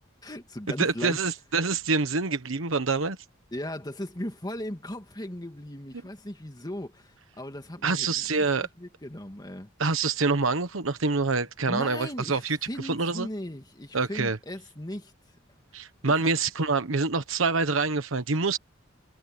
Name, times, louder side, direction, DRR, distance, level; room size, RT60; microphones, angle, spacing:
voice 1, 0.2-1.2 3.5-8.5 8.8-9.7 11.6-15.1 16.0-16.3, left 1 dB, 20° left, 2.4 m, -37 dB
voice 2, 0.8-3.2 7.8-8.7 9.8-13.3 13.9-14.4 15.7-18.6, right 4 dB, 85° right, 1.2 m, -26 dB
head